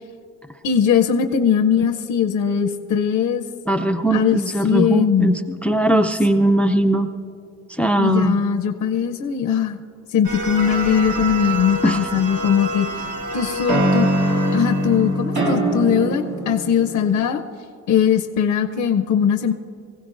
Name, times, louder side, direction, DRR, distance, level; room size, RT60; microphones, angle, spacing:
voice 1, 0.6-3.4 4.1-5.3 8.0-9.8 10.1-12.9 13.3-14.1 14.5-17.4 17.9-19.5, left 8 dB, 75° left, 6 dB, 0.7 m, -20 dB
voice 2, 3.7-7.1 7.8-8.4 11.8-12.0, right 1 dB, 5° left, 8 dB, 0.5 m, -19 dB
sound 1, 10.2-15.7, right 2 dB, 85° right, 2.0 m, -29 dB
sound 2, 12.2-13.0 13.7-17.3, right 1 dB, 70° right, 2.1 m, -22 dB
24.5 x 16.0 x 2.6 m, 2.7 s
cardioid pair, 90°, 30 cm